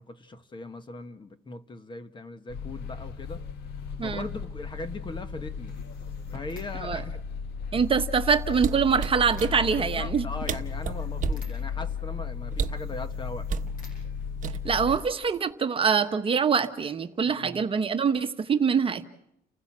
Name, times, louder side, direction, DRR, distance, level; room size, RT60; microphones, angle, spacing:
voice 1, 0.0-3.5 4.0-5.8 6.3-7.2 9.8-13.5 17.3-17.6, left 2 dB, 30° left, 1.3 m, -39 dB
sound 1, 2.5-15.0, left 6 dB, 80° left, 1.5 m, -35 dB
sound 2, 3.6-15.5, equal, 55° left, 7.8 m, -50 dB
voice 2, 7.7-10.3 14.6-19.1, right 6 dB, 30° right, 1.2 m, -24 dB
sound 3, 8.5-9.5 10.2-10.3 10.5-11.5 12.5-12.9 13.5-13.7 14.4-14.9 15.2-15.5, right 9 dB, 50° right, 1.0 m, -31 dB
30.0 x 15.5 x 7.4 m
cardioid pair, 110°, 17 cm